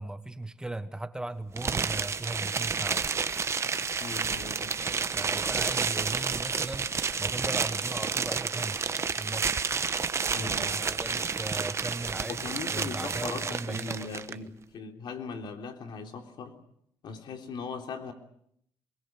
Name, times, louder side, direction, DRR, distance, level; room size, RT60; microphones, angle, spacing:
voice 1, 0.0-3.1 5.1-6.9 7.2-8.8 9.2-9.6 10.4-14.5, right 2 dB, 10° right, 11 dB, 1.4 m, -38 dB
sound 1, 1.6-14.3, right 5 dB, 35° right, 1.1 m, -30 dB
voice 2, 4.0-4.7 5.8-5.9 10.3-10.8 11.2-11.3 12.2-16.6 17.0-18.1, left 5 dB, 70° left, 5 dB, 3.5 m, -39 dB
23.5 x 22.0 x 7.8 m, 0.70 s
cardioid pair, 105°, 8 cm